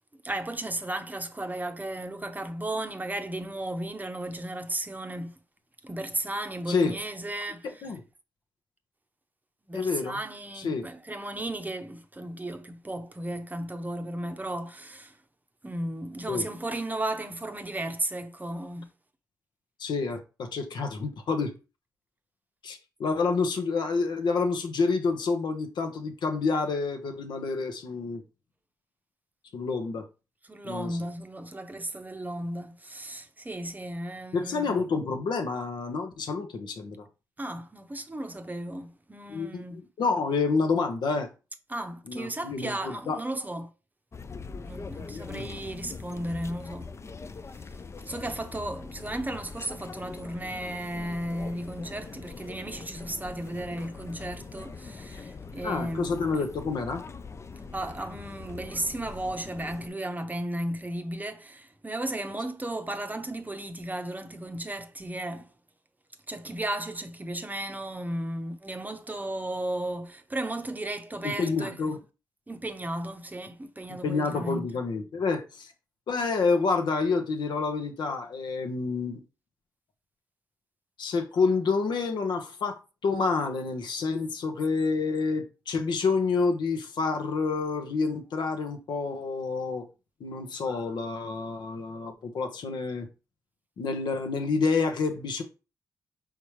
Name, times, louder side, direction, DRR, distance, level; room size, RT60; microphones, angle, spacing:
voice 1, 0.2-5.4 5.8-7.9 9.7-15.2 15.6-18.9 30.4-34.8 37.4-39.8 41.7-43.7 44.7-46.9 47.6-47.7 48.0-56.1 56.4-56.5 57.7-65.5 66.3-71.9 72.5-74.7, right 1 dB, 20° right, 0.7 m, -35 dB
voice 2, 9.7-10.2 10.6-10.9 16.3-16.5 19.8-21.5 22.6-28.2 29.5-30.0 30.6-31.0 34.3-37.1 39.3-41.3 42.1-43.2 45.3-45.5 55.6-57.1 71.2-72.0 73.9-75.7 76.1-79.2 81.0-82.8 83.0-89.8 90.2-93.1 93.8-95.4, left 4 dB, 75° left, 0.8 m, -28 dB
sound 1, 44.1-59.9, left 4 dB, 35° left, 0.4 m, -42 dB
4.2 x 3.7 x 3.1 m
supercardioid pair, 50°, 8 cm